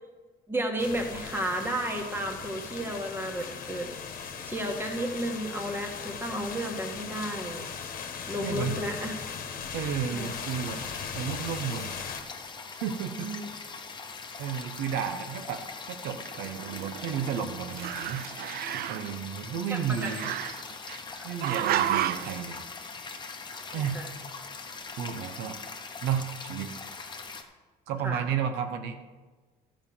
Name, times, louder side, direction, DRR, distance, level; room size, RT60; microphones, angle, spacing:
voice 1, 0.5-3.9 4.2-7.7 8.3-9.1 10.1-10.3 13.1-13.5 14.1-14.2 19.7-20.1 21.1-21.3 23.7-24.1 28.0-28.2, right 1 dB, 15° right, 2 dB, 1.7 m, -33 dB
sound 1, 0.8-12.2, left 6 dB, 55° left, 1.3 m, -38 dB
voice 2, 8.4-8.8 9.7-10.8 11.1-11.9 12.8-13.3 14.4-15.6 15.9-18.3 18.7-20.3 21.2-22.6 23.7-24.0 25.0-25.6 26.0-26.7 27.9-29.0, right 8 dB, 85° right, 7 dB, 0.9 m, -32 dB
sound 2, 10.2-27.4, left 4 dB, 25° left, 1.0 m, -42 dB
Growling, 16.2-17.4 17.7-19.1 20.0-21.0 21.4-22.4, right 12 dB, 65° right, 0.4 m, -31 dB
13.0 x 5.1 x 7.2 m, 1.3 s
cardioid pair, 110°, 17 cm